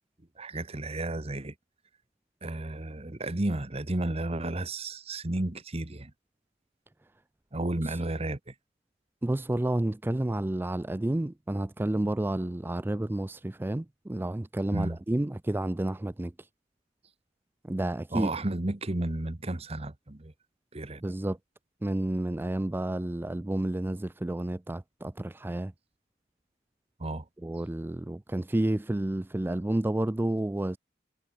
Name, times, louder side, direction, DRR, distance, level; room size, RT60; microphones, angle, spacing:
voice 1, 0.4-1.5 2.4-6.1 7.5-8.5 14.7-15.0 18.1-20.3 20.7-21.0 27.0-27.2, right 2 dB, 30° right, 1.1 m, -32 dB
voice 2, 9.2-16.5 17.6-18.3 21.0-21.4 21.8-25.7 27.4-30.8, right 1 dB, 10° right, 0.3 m, -30 dB
head